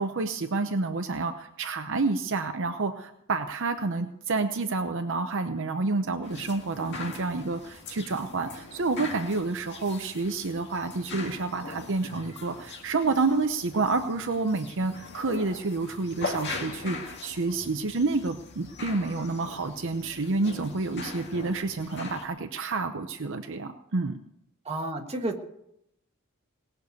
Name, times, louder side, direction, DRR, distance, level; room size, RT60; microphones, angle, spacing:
voice 1, 0.0-24.2, right 3 dB, 60° right, 7 dB, 0.8 m, -29 dB
sound 1, 6.2-22.2, left 3 dB, 50° left, 2.0 m, -41 dB
voice 2, 24.6-25.5, right 2 dB, 30° right, 2 dB, 1.6 m, -31 dB
19.0 x 6.8 x 8.2 m, 0.79 s
head